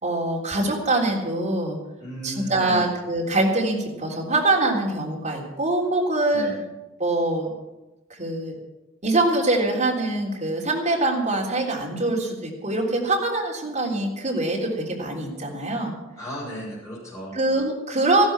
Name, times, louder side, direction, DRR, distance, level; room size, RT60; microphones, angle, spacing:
voice 1, 0.0-1.8 2.2-6.5 7.0-7.5 8.1-8.6 9.0-15.9 17.3-18.3, right 2 dB, 35° right, -2 dB, 3.5 m, -24 dB
voice 2, 2.0-2.9 6.3-6.6 16.2-17.4, equal, 15° left, -8 dB, 7.0 m, -34 dB
14.5 x 12.5 x 6.1 m, 1.1 s
head